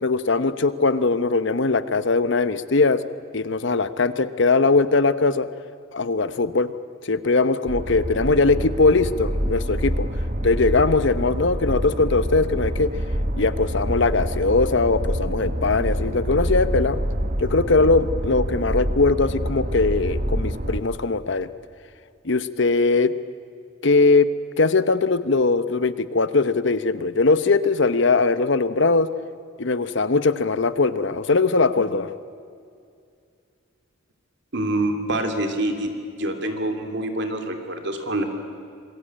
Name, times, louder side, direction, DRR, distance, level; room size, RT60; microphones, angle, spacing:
voice 1, 0.0-3.0 3.3-5.5 5.9-6.7 7.0-10.1 10.4-12.9 13.3-17.0 17.4-21.5 22.2-23.1 23.8-24.3 24.6-29.1 29.6-32.2, left 3 dB, 60° left, 13 dB, 0.9 m, -20 dB
sound 1, 7.7-20.8, equal, 40° right, 1.4 m, -26 dB
voice 2, 34.5-35.9 36.2-38.2, right 1 dB, 60° right, 5 dB, 2.9 m, -26 dB
26.5 x 21.0 x 8.9 m, 2.3 s
head